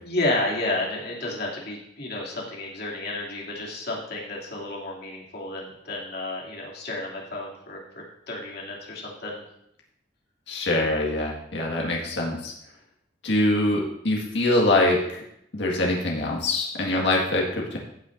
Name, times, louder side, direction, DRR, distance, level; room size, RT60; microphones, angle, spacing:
voice 1, 0.0-9.4, left 2 dB, 65° left, -3 dB, 2.8 m, -31 dB
voice 2, 10.5-12.5 13.2-15.2 15.5-17.8, left 1 dB, 85° left, -2 dB, 1.9 m, -24 dB
15.0 x 8.5 x 2.7 m, 0.74 s
head